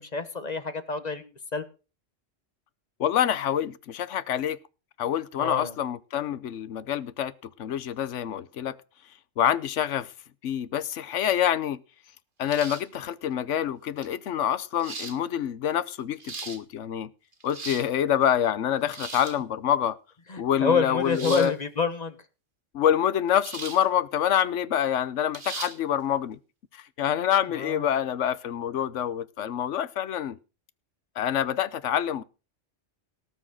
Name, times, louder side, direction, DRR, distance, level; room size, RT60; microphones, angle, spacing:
voice 1, 0.0-1.6 5.4-5.7 20.3-22.2 27.5-27.9, left 4 dB, 35° left, 1.3 m, -28 dB
voice 2, 3.0-4.6 5.0-7.3 7.6-8.8 9.4-10.1 10.4-11.8 12.4-17.1 17.4-20.0 20.4-21.5 22.7-26.4 27.0-30.4 31.2-32.2, left 10 dB, 75° left, 1.1 m, -26 dB
sound 1, 12.5-13.0 14.0-14.1 14.8-15.2 16.0-16.6 17.3-17.9 18.9-19.4 21.1-21.5 23.4-23.8 24.2-24.3 25.3-25.8, right 3 dB, 45° right, 1.8 m, -37 dB
18.5 x 6.3 x 6.2 m
omnidirectional pair, 1.3 m